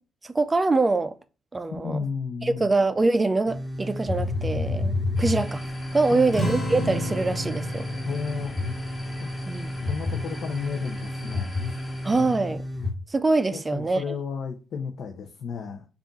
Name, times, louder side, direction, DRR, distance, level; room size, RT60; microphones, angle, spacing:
voice 1, 0.2-1.1 1.5-2.0 2.4-5.6 5.9-7.9 9.5-9.7 12.0-12.6 13.1-14.0, right 3 dB, 20° right, 0.4 m, -24 dB
voice 2, 1.8-2.7 6.1-6.4 8.0-8.8 9.2-9.3 9.9-11.5 12.1-12.5 13.5-15.8, left 6 dB, 65° left, 0.5 m, -33 dB
sound 1, 3.5-12.9, left 2 dB, ahead, 0.9 m, -31 dB
sound 2, 5.2-12.4, left 1 dB, 15° left, 1.2 m, -43 dB
sound 3, 6.3-11.4, equal, 45° left, 1.9 m, -34 dB
3.5 x 2.4 x 3.9 m
cardioid pair, 90°, 0 cm